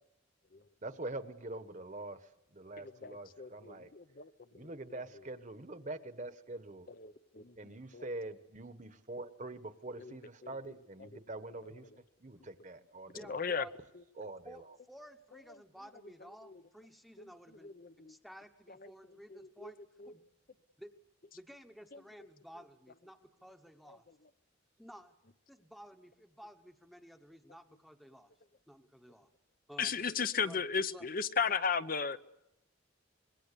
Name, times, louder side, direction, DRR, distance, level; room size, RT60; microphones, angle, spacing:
voice 1, 0.8-2.2 2.5-3.9 4.5-6.8 7.6-11.8 12.2-13.5 14.2-14.6, right 2 dB, 40° right, 1.3 m, -44 dB
voice 2, 3.0-5.0 7.6-8.1 10.0-10.2 10.4-10.5 11.0-11.1 13.3-13.7 14.2-14.3 16.5-16.6 17.2-17.3 17.6-18.1 19.3-19.7 20.0-20.1 29.8-32.2, left 6 dB, 45° left, 0.8 m, -35 dB
voice 3, 13.1-13.7 14.4-17.8 18.1-19.8 20.1-20.3 20.8-20.9 21.3-24.1 24.8-25.1 25.5-28.3 28.7-29.3 29.7-30.0 30.4-30.6 30.9-31.1, equal, ahead, 1.1 m, -54 dB
26.0 x 22.0 x 6.8 m
head